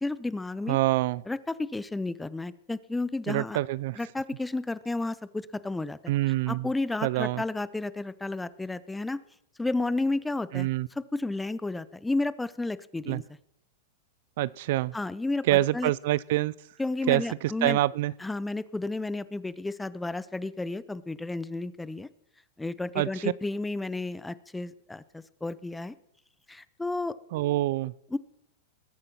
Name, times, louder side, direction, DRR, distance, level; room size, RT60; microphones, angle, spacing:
voice 1, 0.0-0.8 1.3-3.6 4.0-6.0 6.5-9.2 9.6-10.7 11.1-13.2 14.9-15.9 16.8-17.8 18.2-22.1 22.6-25.9 26.5-27.1 28.1-28.2, left 2 dB, 5° left, 0.7 m, -32 dB
voice 2, 0.7-1.2 3.3-4.0 6.1-6.7 7.0-7.4 10.5-10.9 13.1-13.2 14.4-14.9 15.5-16.5 17.1-18.1 22.9-23.3 27.3-27.9, right 16 dB, 65° right, 0.4 m, -26 dB
20.5 x 8.9 x 5.9 m
hypercardioid pair, 120°, 0 cm